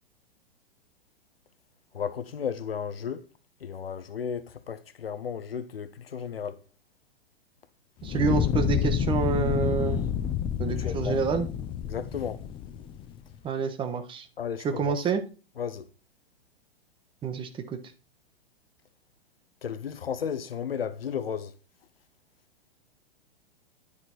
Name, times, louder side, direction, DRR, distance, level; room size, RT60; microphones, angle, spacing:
voice 1, 1.9-3.3 3.6-6.6 10.6-11.2 11.8-12.4 14.4-14.9 15.6-15.9 19.6-21.5, left 7 dB, 70° left, 0.8 m, -34 dB
Fire, 8.0-13.2, left 9 dB, 15° left, 0.5 m, -29 dB
voice 2, 8.0-10.0 10.6-11.5 13.4-14.3 14.6-15.2 17.2-17.8, right 5 dB, 15° right, 0.8 m, -28 dB
9.8 x 4.4 x 4.2 m
figure-of-eight pair, 105°, 30 cm